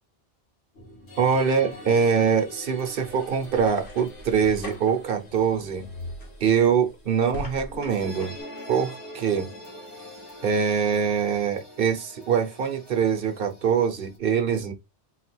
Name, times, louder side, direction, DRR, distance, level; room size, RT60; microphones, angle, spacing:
sound 1, 0.7-14.2, left 1 dB, 70° left, 2.3 m, -45 dB
voice 1, 1.2-5.9 6.4-8.4 8.7-9.5 10.4-14.7, right 6 dB, 55° right, 0.9 m, -23 dB
sound 2, 1.8-8.4, left 2 dB, 50° left, 1.3 m, -42 dB
4.0 x 2.4 x 4.3 m
omnidirectional pair, 1.2 m